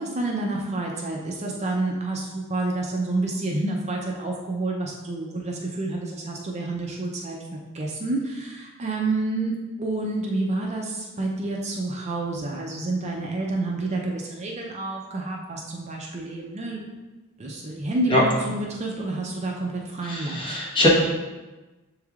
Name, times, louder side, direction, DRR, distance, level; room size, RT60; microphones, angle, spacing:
voice 1, 0.0-7.4 7.7-16.8 17.4-20.4, right 2 dB, 30° right, -1 dB, 0.5 m, -29 dB
voice 2, 20.1-20.9, left 1 dB, 25° left, -5 dB, 1.1 m, -22 dB
7.1 x 3.2 x 2.4 m, 1.2 s
head